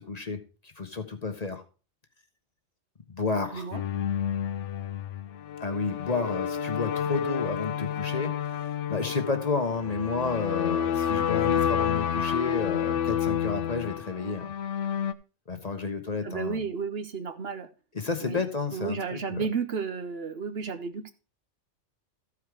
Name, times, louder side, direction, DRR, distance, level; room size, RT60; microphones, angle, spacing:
voice 1, 0.0-1.6 3.1-3.7 5.6-8.3 8.9-14.5 15.5-16.6 17.9-19.4, left 4 dB, 35° left, 6 dB, 0.9 m, -31 dB
sound 1, 3.7-15.1, left 8 dB, 75° left, 1.0 m, -29 dB
voice 2, 16.2-17.7 18.2-18.4 18.7-21.1, right 5 dB, 60° right, 10 dB, 1.0 m, -32 dB
14.0 x 4.8 x 4.7 m, 0.35 s
omnidirectional pair, 1.3 m